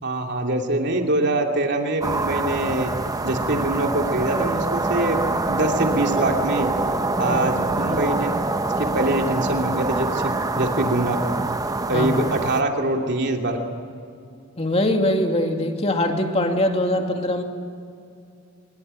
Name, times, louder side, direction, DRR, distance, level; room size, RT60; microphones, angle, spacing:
voice 1, 0.0-2.9 3.2-5.2 5.5-6.7 7.2-8.4 8.8-11.2 11.9-13.6, right 1 dB, 50° right, 2 dB, 2.8 m, -24 dB
sound 1, 2.0-12.6, right 2 dB, 15° right, 0.8 m, -25 dB
voice 2, 7.3-8.0 11.9-12.2 14.6-17.4, left 1 dB, 30° left, 3 dB, 2.4 m, -23 dB
24.5 x 22.0 x 9.0 m, 2.5 s
head